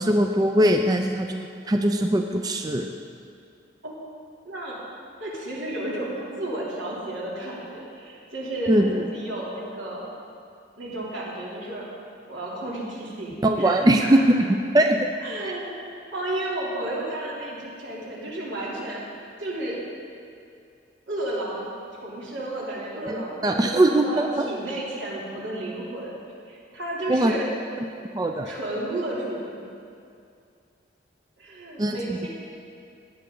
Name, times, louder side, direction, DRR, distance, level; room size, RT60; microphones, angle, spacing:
voice 1, 0.0-2.9 8.7-9.0 13.4-14.4 14.7-15.0 15.4-15.5 23.4-24.5 27.1-27.4 28.1-28.5 31.8-32.3, right 1 dB, 20° right, 4 dB, 0.4 m, -21 dB
voice 2, 4.4-4.8 5.2-10.0 10.8-11.9 12.3-14.3 15.2-19.0 19.4-19.8 21.1-26.1 26.4-27.5 28.4-29.7 31.4-32.3, right 1 dB, 85° right, -6 dB, 3.2 m, -32 dB
17.0 x 9.3 x 3.8 m, 2.4 s
head